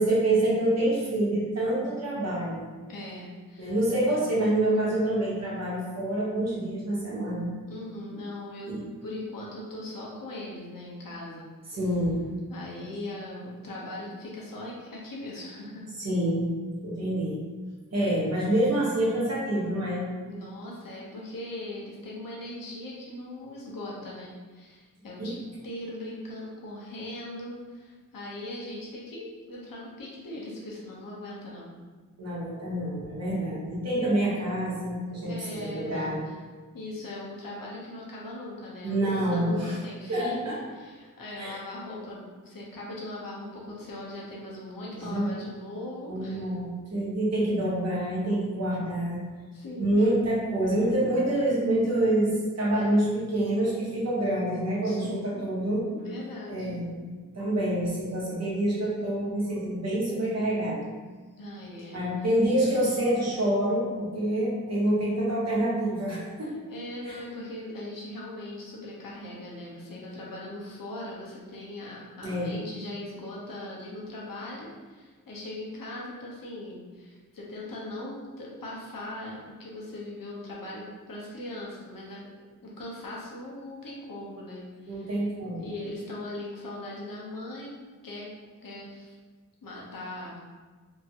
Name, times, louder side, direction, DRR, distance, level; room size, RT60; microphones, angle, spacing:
voice 1, 0.0-2.7 3.6-7.5 8.7-8.8 11.7-12.2 16.0-16.5 16.8-17.4 17.9-20.1 25.2-25.3 32.2-36.2 38.8-39.7 40.1-40.6 41.4-41.6 44.9-45.3 46.1-49.2 49.8-55.9 56.5-57.1 57.3-60.9 61.9-66.6 67.0-67.2 72.2-72.5 84.8-85.6, right 1 dB, 50° right, -6 dB, 1.0 m, -27 dB
voice 2, 2.9-3.7 7.7-11.8 12.5-15.9 20.3-31.7 35.3-36.3 36.7-46.5 49.5-50.1 54.8-55.5 55.9-56.8 61.4-62.1 66.4-82.3 82.6-85.1 85.6-87.8 88.0-88.3 88.6-89.1 89.6-90.4, left 1 dB, 85° left, -4 dB, 0.8 m, -40 dB
2.8 x 2.5 x 2.7 m, 1.4 s
wide cardioid pair, 115°, 33 cm